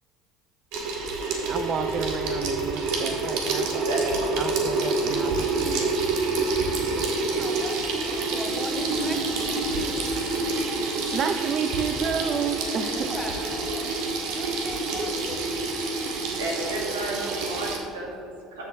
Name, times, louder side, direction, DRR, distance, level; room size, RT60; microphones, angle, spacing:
Water tap faucet / Sink (filling or washing), 0.7-17.8, right 3 dB, 65° right, 1.6 m, -27 dB
voice 1, 1.5-3.9 4.4-6.0 10.5-13.2, right 7 dB, 45° right, 8 dB, 0.4 m, -31 dB
voice 2, 3.9-4.3 14.9-15.0 16.4-18.7, right 1 dB, 85° right, -1 dB, 1.8 m, -33 dB
voice 3, 7.3-10.1 12.7-13.7 14.3-15.4, left 1 dB, ahead, 1 dB, 1.6 m, -37 dB
13.0 x 7.2 x 3.4 m, 2.8 s
hypercardioid pair, 70°, 0 cm